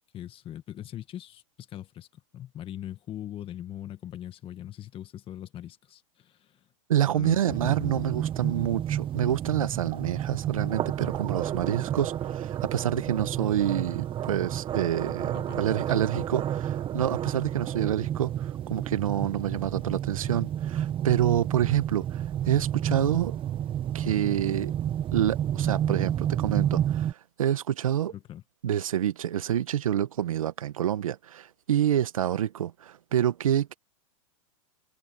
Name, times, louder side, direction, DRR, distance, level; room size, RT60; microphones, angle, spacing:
voice 1, 0.1-2.1 2.3-6.6 7.1-7.9 15.3-16.0 28.1-28.4, left 11 dB, 30° left, 1.7 m, -41 dB
voice 2, 6.9-23.4 23.9-24.7 25.1-28.1 28.6-33.7, right 10 dB, 90° right, 1.7 m, -27 dB
sound 1, 7.5-27.1, right 10 dB, 30° right, 1.7 m, -30 dB
hypercardioid pair, 120°, 17 cm